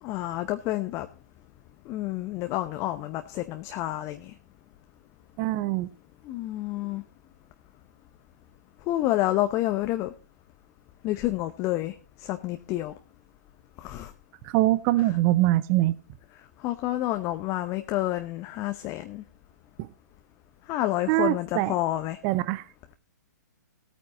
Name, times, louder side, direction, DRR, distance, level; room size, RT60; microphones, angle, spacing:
voice 1, 0.0-1.1 1.8-4.3 6.2-7.0 8.9-10.1 11.0-12.9 13.8-14.1 16.6-19.2 20.7-22.2, left 15 dB, 30° left, 8 dB, 0.9 m, -29 dB
voice 2, 5.4-5.9 14.4-15.9 19.8-19.9 21.1-21.7 22.2-22.7, right 16 dB, 30° right, 16 dB, 0.5 m, -23 dB
16.0 x 9.0 x 4.1 m, 0.32 s
figure-of-eight pair, 125°, 10 cm